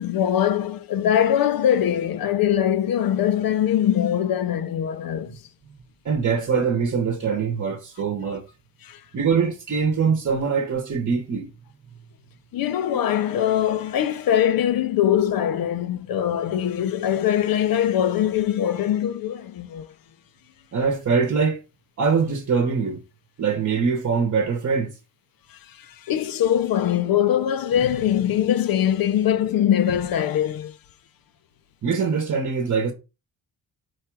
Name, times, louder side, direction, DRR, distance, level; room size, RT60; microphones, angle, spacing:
voice 1, 0.0-5.3 8.8-9.0 12.5-19.9 25.5-30.7, left 10 dB, 60° left, 0.5 m, -22 dB
voice 2, 6.0-8.4 9.1-11.5 20.7-21.6 22.0-23.0 23.4-24.9 31.8-32.9, right 5 dB, 40° right, 0.9 m, -23 dB
4.6 x 2.3 x 4.5 m
cardioid pair, 95°, 39 cm